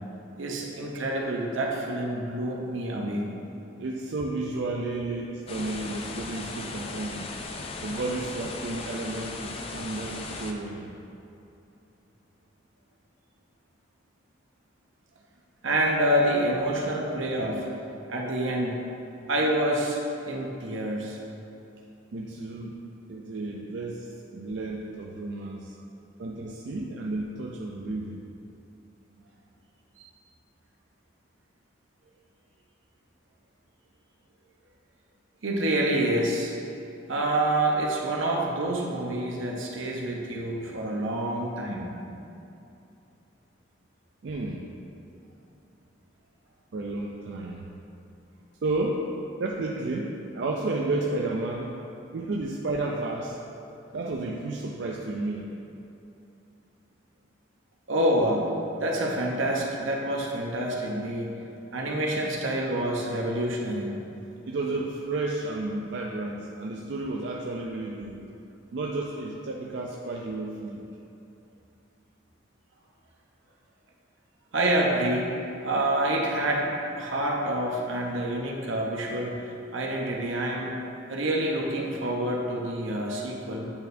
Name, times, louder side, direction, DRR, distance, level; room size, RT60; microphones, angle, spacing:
voice 1, 0.4-3.4 15.6-17.7 18.1-18.8 19.3-20.0 20.3-21.2 35.4-36.5 37.1-41.9 57.9-58.5 58.8-61.3 61.7-64.0 74.5-75.4 75.6-76.7 77.0-79.4 79.7-80.7 81.1-83.7, right 1 dB, 80° right, -1 dB, 0.9 m, -27 dB
voice 2, 3.8-7.3 7.8-10.9 22.1-22.8 23.1-25.8 26.2-28.2 44.2-44.6 46.7-47.7 48.6-49.1 49.4-51.7 52.1-53.4 53.9-55.5 64.5-68.2 68.7-70.8, right 2 dB, 60° right, -2 dB, 0.4 m, -32 dB
sound 1, 5.5-10.5, left 3 dB, 30° left, 0.3 m, -37 dB
8.6 x 4.2 x 2.7 m, 2.8 s
head